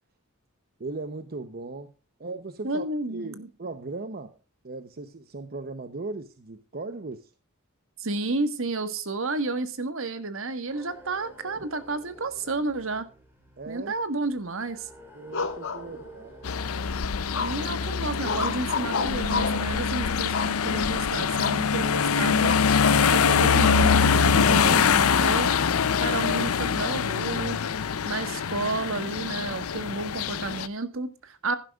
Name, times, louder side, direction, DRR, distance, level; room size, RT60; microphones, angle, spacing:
voice 1, 0.8-1.9 2.2-4.4 4.6-7.3 11.6-11.7 13.6-13.9 15.1-16.5 16.7-17.0, right 3 dB, 45° right, 0.8 m, -38 dB
voice 2, 2.6-3.5 8.0-13.1 13.7-14.9 17.4-22.6 23.1-25.5 26.0-27.6 28.0-31.6, right 3 dB, 65° right, 1.5 m, -31 dB
sound 1, 10.7-30.6, equal, 10° right, 3.8 m, -52 dB
sound 2, 15.3-16.4 17.3-17.8 18.2-19.7 20.3-20.9 21.4-21.6 21.9-22.1 22.4-23.0 23.6-23.9 24.5-25.2, left 4 dB, 65° left, 1.7 m, -31 dB
sound 3, 16.4-30.7, left 6 dB, 85° left, 0.6 m, -24 dB
15.5 x 11.5 x 2.4 m
head